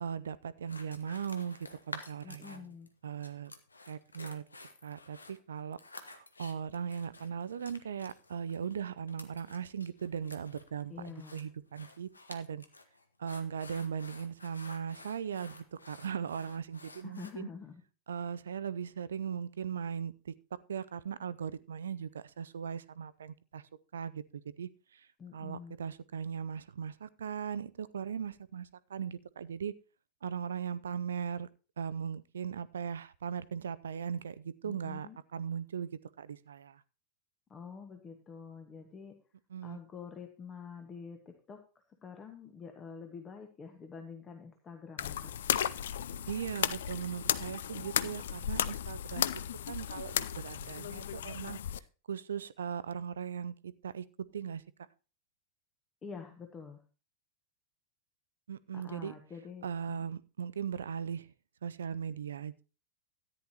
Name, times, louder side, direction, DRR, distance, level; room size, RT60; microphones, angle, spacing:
voice 1, 0.0-2.7 3.0-3.5 3.9-4.4 4.8-12.6 13.2-17.5 18.1-20.3 20.7-29.7 30.2-31.5 31.8-36.8 39.5-39.8 46.3-49.4 49.7-51.6 52.1-54.1 54.3-54.9 58.5-59.1 59.6-61.3 61.6-62.6, right 7 dB, 65° right, 18 dB, 0.5 m, -39 dB
sound 1, 0.7-2.9 3.2-17.3, left 3 dB, 80° left, 1.1 m, -51 dB
voice 2, 2.2-2.9 10.9-11.4 17.0-17.8 25.2-25.8 34.6-35.2 37.5-39.2 39.6-41.6 42.0-45.3 56.0-56.8 58.7-60.0, left 6 dB, 20° left, 5 dB, 1.3 m, -47 dB
sound 2, 45.0-51.8, left 10 dB, 60° left, 0.5 m, -34 dB
13.5 x 10.0 x 2.9 m, 0.34 s
figure-of-eight pair, 90°, 0 cm